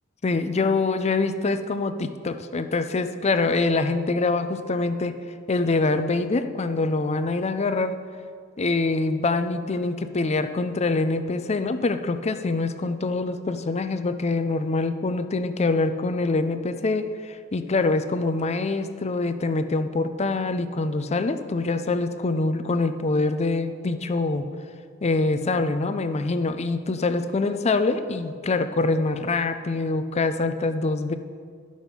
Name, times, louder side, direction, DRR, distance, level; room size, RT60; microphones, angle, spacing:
voice 1, 0.2-5.2 5.5-8.0 8.6-24.5 25.0-31.1, left 3 dB, 30° left, 10 dB, 0.5 m, -25 dB
11.5 x 6.4 x 5.2 m, 2.1 s
head